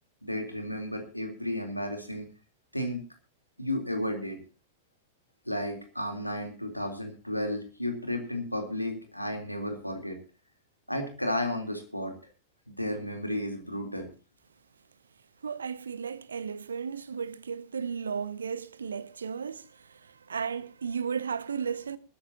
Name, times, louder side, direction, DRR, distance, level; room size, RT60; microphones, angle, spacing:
voice 1, 0.2-2.3 2.7-3.0 3.6-4.4 5.5-10.2 10.9-12.1 12.7-14.1, left 1 dB, 90° left, 3.6 m, -33 dB
voice 2, 15.4-22.0, right 6 dB, 70° right, 1.0 m, -34 dB
20.0 x 14.0 x 2.9 m
figure-of-eight pair, 90°, 0 cm